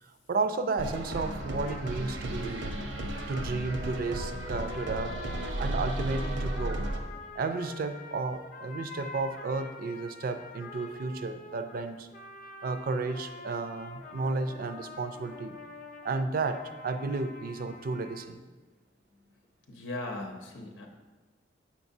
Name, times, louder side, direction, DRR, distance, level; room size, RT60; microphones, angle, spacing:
voice 1, 0.0-2.8 3.3-5.1 5.6-6.8 7.3-12.1 12.6-15.6 16.0-18.4, right 3 dB, 50° right, 9 dB, 0.4 m, -33 dB
sound 1, 0.8-7.0, right 1 dB, 85° right, 0.7 m, -34 dB
sound 2, 1.1-18.3, left 3 dB, 45° left, 0.5 m, -46 dB
voice 2, 19.7-20.9, left 2 dB, 75° left, 1 dB, 0.8 m, -38 dB
7.1 x 5.8 x 2.7 m, 1.3 s
head